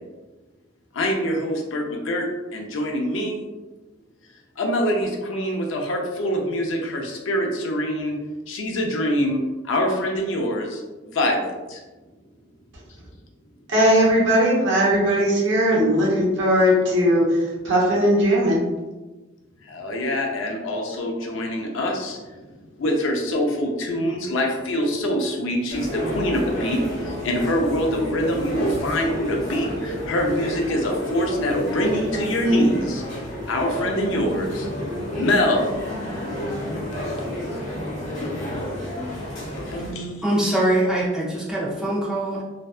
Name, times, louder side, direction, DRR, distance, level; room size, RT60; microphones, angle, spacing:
voice 1, 0.9-2.3 2.5-3.5 4.6-8.2 8.5-11.8 19.6-22.5 22.8-33.0 33.5-34.7 35.1-35.7 39.4-40.2, equal, 80° left, 1 dB, 0.5 m, -24 dB
voice 2, 13.7-17.4 17.6-18.7, equal, 70° right, -6 dB, 0.9 m, -18 dB
sound 1, 25.7-39.9, left 1 dB, 40° left, 0.8 m, -30 dB
voice 3, 40.2-42.4, right 1 dB, 5° right, -6 dB, 0.4 m, -23 dB
2.6 x 2.2 x 2.3 m, 1.2 s
head